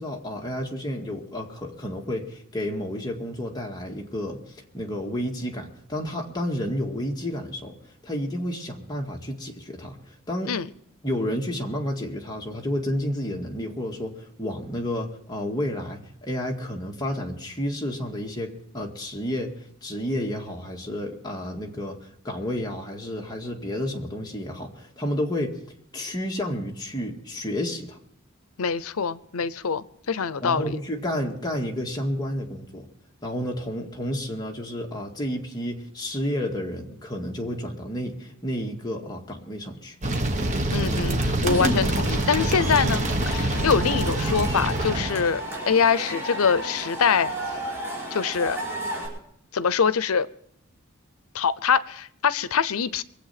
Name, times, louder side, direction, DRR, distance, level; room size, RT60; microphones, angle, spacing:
voice 1, 0.0-7.8 8.0-10.5 11.0-19.5 19.8-25.6 25.9-28.0 30.4-32.9 33.2-40.0, equal, 20° left, 2.0 m, -31 dB
voice 2, 28.6-30.8 40.7-45.4 45.7-47.3 48.1-48.6 49.5-50.3 51.3-53.0, left 6 dB, 85° left, 0.6 m, -24 dB
sound 1, 40.0-45.3, right 1 dB, 35° right, 1.3 m, -25 dB
Cheering / Crowd, 41.5-49.1, equal, 10° right, 5.0 m, -33 dB
23.0 x 8.2 x 5.8 m
head